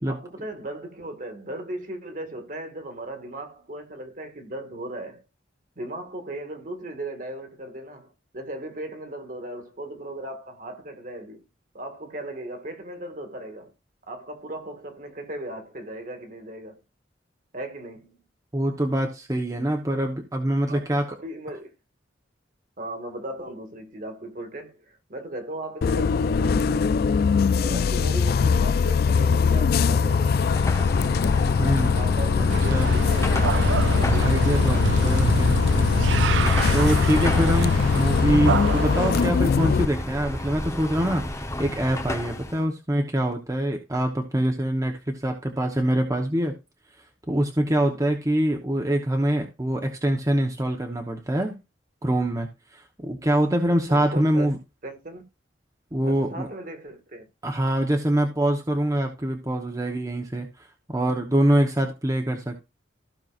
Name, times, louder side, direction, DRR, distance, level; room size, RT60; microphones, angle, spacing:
voice 1, 0.1-5.2 5.8-11.5 11.7-13.7 14.1-16.8 17.5-18.2 20.7-21.7 22.8-27.2 27.6-30.4 31.7-34.2 47.8-48.0 53.9-54.5 54.8-55.2 56.1-57.2, right 1 dB, 45° right, 1.9 m, -37 dB
voice 2, 18.5-21.2 31.6-32.0 32.7-32.9 34.2-35.6 36.7-46.5 47.3-51.5 52.0-54.6 55.9-56.5 57.4-62.6, right 1 dB, 20° right, 1.1 m, -24 dB
Bus, 25.8-39.8, left 5 dB, 55° left, 0.3 m, -21 dB
Car passing by / Traffic noise roadway noise / Engine, 30.0-42.6, left 1 dB, 15° left, 1.0 m, -32 dB
sound 1, 32.5-39.3, right 6 dB, 75° right, 0.4 m, -28 dB
15.0 x 5.8 x 2.5 m
head